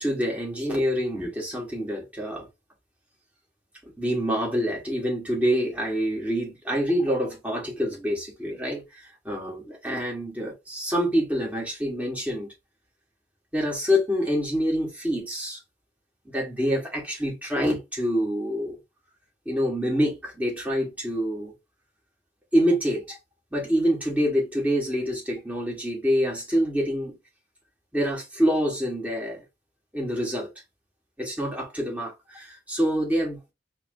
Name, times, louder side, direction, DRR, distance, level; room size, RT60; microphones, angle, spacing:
voice 1, 0.0-2.5 3.8-12.5 13.5-15.6 16.2-18.8 19.4-21.5 22.5-23.2 23.5-27.2 27.9-29.4 29.9-30.5 31.2-33.4, equal, 10° right, 1.7 m, -26 dB
4.7 x 2.1 x 3.4 m
head